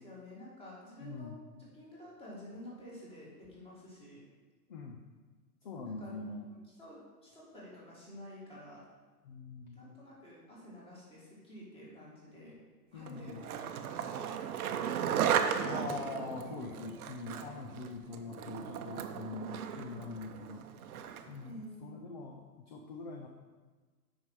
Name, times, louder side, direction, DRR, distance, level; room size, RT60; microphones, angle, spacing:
voice 1, 0.0-4.2 5.8-6.1 6.8-8.8 9.7-12.6 12.9-14.5 18.0-18.2 21.4-22.1, left 1 dB, 10° left, -6 dB, 2.2 m, -50 dB
voice 2, 1.0-1.4 4.7-5.0 5.6-6.5 9.2-9.8 12.9-13.5 15.7-20.6 21.3-23.3, left 4 dB, 30° left, 2 dB, 0.4 m, -43 dB
Skateboard, 13.1-21.4, right 8 dB, 60° right, 0.8 m, -35 dB
8.4 x 5.4 x 4.8 m, 1.4 s
hypercardioid pair, 150°, 49 cm